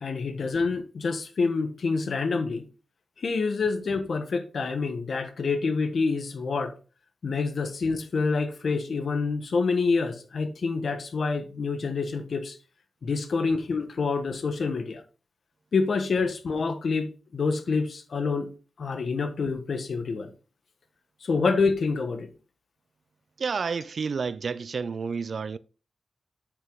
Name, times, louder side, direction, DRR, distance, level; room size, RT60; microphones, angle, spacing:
voice 1, 0.0-2.7 3.2-6.7 7.2-12.6 13.0-15.0 15.7-18.5 18.8-20.3 21.2-22.3, left 4 dB, 60° left, 1.2 m, -27 dB
voice 2, 23.4-25.6, right 5 dB, 55° right, 0.4 m, -30 dB
8.2 x 6.0 x 3.7 m
wide cardioid pair, 145°, 0 cm